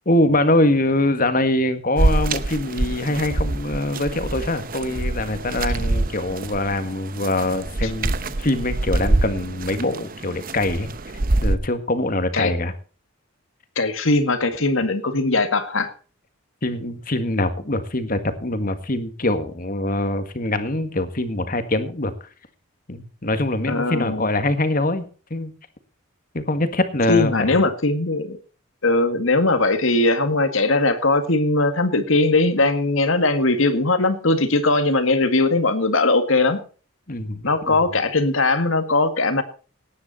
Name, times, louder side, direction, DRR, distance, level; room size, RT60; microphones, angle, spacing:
voice 1, 0.1-10.9 11.4-12.7 16.6-22.1 22.9-25.0 25.3-25.5 26.3-27.5 37.1-37.8, left 1 dB, 40° left, 9 dB, 1.8 m, -23 dB
sound 1, 2.0-11.6, right 2 dB, 45° right, 0.9 m, -25 dB
voice 2, 13.8-15.9 23.7-24.3 27.1-28.4 28.8-36.6 37.4-39.4, left 2 dB, 70° left, 9 dB, 1.9 m, -20 dB
18.5 x 9.7 x 4.3 m, 0.39 s
head